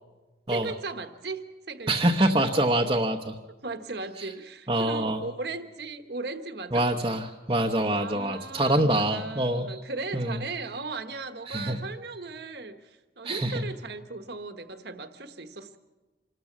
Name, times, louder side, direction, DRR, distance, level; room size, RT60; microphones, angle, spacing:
voice 1, 0.5-2.1 2.8-3.0 3.6-6.9 7.9-15.8, right 3 dB, 60° right, 8 dB, 1.3 m, -37 dB
voice 2, 1.9-3.4 4.2-4.3 4.7-5.2 6.7-9.8 10.1-10.4 11.5-11.8 13.2-13.6, right 1 dB, 25° right, 1 dB, 0.9 m, -25 dB
26.0 x 13.5 x 7.3 m, 1.2 s
head